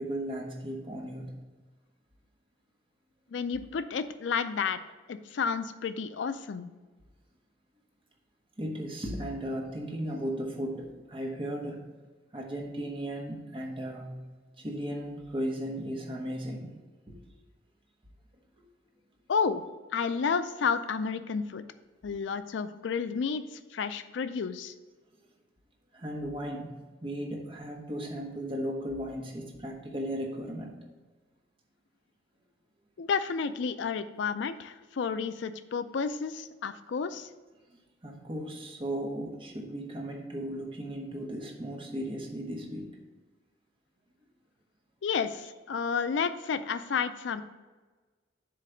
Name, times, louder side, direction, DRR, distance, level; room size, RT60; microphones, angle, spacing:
voice 1, 0.0-1.3 8.6-11.9 12.3-14.2 14.6-16.7 17.1-17.2 18.6-18.7 20.0-20.1 22.1-22.2 25.9-30.9 37.7-42.9 45.7-45.8, equal, 30° right, 0 dB, 1.2 m, -36 dB
voice 2, 3.3-4.8 5.1-6.7 19.3-19.6 19.9-21.6 22.0-24.7 33.0-37.3 45.0-47.4, left 5 dB, 70° left, 12 dB, 0.4 m, -31 dB
7.8 x 3.3 x 6.4 m, 1.3 s
head